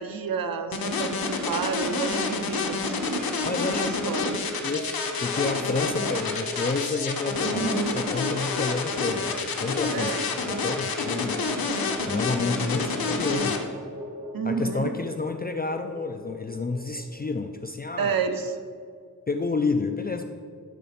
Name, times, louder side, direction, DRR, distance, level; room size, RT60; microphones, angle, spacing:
voice 1, 0.0-3.2 3.8-4.4 7.4-7.9 9.9-10.3 14.3-14.9 18.0-18.5, right 5 dB, 80° right, 8 dB, 0.7 m, -30 dB
sound 1, 0.7-13.6, left 4 dB, 85° left, 0.9 m, -28 dB
sound 2, 3.4-17.4, left 2 dB, 10° right, 2.5 m, -38 dB
voice 2, 3.5-4.2 4.6-10.1 10.5-11.7 12.0-13.6 14.4-18.2 19.3-20.2, left 3 dB, 30° left, 6 dB, 0.4 m, -30 dB
11.5 x 4.2 x 5.7 m, 2.1 s
wide cardioid pair, 110°, 35 cm